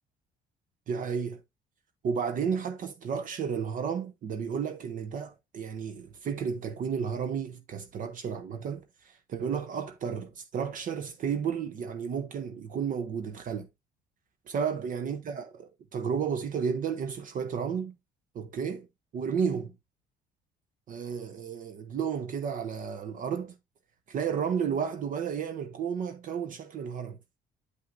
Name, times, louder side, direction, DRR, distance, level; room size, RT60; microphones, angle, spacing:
voice 1, 0.9-1.4 2.0-13.7 14.5-17.9 18.3-18.9 19.1-19.7 20.9-23.5 24.1-27.2, right 7 dB, 50° right, 0.8 m, -32 dB
8.0 x 5.6 x 2.5 m
cardioid pair, 110°, 17 cm